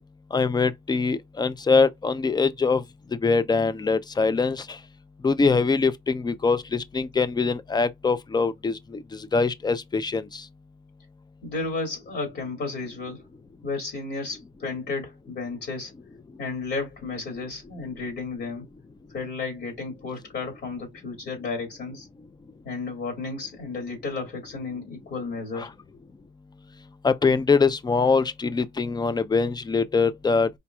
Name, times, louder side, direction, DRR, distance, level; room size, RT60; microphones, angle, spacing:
voice 1, 0.3-2.8 3.2-4.8 5.2-10.4 25.6-25.7 27.0-30.5, left 4 dB, 20° left, 0.5 m, -23 dB
voice 2, 11.4-13.3 13.6-15.9 16.4-18.6 19.1-22.1 22.6-25.7, left 3 dB, 60° left, 2.3 m, -33 dB
5.0 x 2.7 x 2.3 m
cardioid pair, 90°, 20 cm